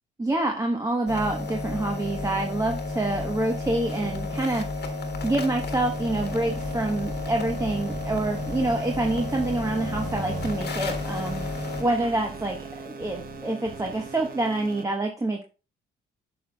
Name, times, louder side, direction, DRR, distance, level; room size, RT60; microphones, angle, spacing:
voice 1, 0.2-4.9 5.2-11.4 11.8-15.4, right 2 dB, 15° right, 2 dB, 1.0 m, -27 dB
sound 1, 1.1-11.8, left 2 dB, 55° left, 1.4 m, -32 dB
sound 2, 5.7-14.8, right 4 dB, 50° right, 1.2 m, -40 dB
9.2 x 6.1 x 2.3 m, 0.33 s
cardioid pair, 90°, 20 cm